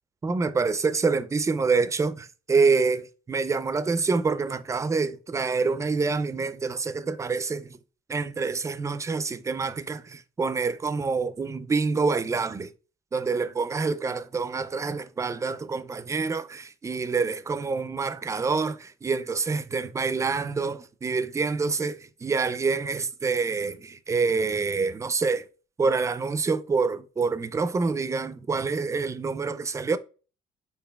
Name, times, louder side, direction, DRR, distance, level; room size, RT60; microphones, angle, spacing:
voice 1, 0.2-7.8 8.1-12.7 13.1-25.5 25.8-30.0, right 4 dB, 20° right, 0.4 m, -27 dB
5.6 x 4.1 x 2.2 m
cardioid pair, 110°, 17 cm